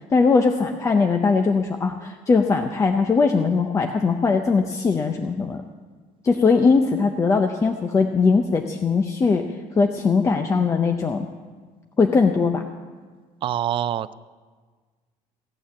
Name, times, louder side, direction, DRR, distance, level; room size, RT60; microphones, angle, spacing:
voice 1, 0.1-5.6 6.2-9.4 9.8-11.3 12.0-12.6, left 4 dB, 20° left, 5 dB, 0.6 m, -20 dB
voice 2, 13.4-14.1, right 11 dB, 40° right, 16 dB, 0.4 m, -25 dB
16.0 x 9.0 x 7.1 m, 1.5 s
cardioid pair, 160°, 14 cm